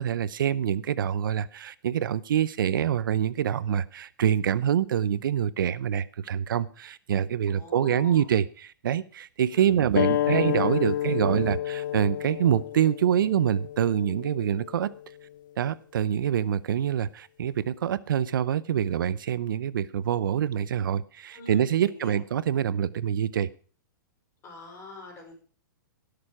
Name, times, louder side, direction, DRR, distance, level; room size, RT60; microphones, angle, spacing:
voice 1, 0.0-14.9 15.6-23.5, right 9 dB, 80° right, 18 dB, 0.7 m, -26 dB
voice 2, 7.5-8.3 9.5-9.8 21.3-22.2 24.4-25.3, left 3 dB, 25° left, 2 dB, 5.4 m, -44 dB
sound 1, 9.9-15.1, left 12 dB, 65° left, 0.7 m, -30 dB
17.5 x 6.8 x 4.8 m, 0.41 s
hypercardioid pair, 145°, 11 cm